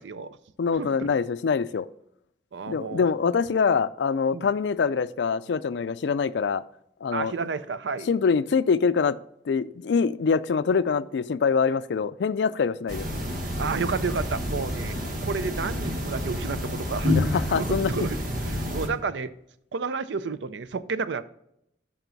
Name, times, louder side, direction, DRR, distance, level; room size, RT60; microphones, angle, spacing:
voice 1, 0.0-0.4 0.7-1.1 2.5-3.1 4.3-4.5 7.1-8.1 13.6-15.0 15.2-18.2 18.4-19.3 19.7-21.2, right 5 dB, 85° right, 14 dB, 0.5 m, -31 dB
voice 2, 0.6-1.9 2.7-6.6 7.0-7.3 8.1-9.2 9.5-13.0 17.1-17.9, left 5 dB, 75° left, 15 dB, 0.4 m, -24 dB
sound 1, 12.9-18.9, left 1 dB, 50° right, 1.4 m, -29 dB
9.1 x 5.9 x 4.0 m, 0.76 s
head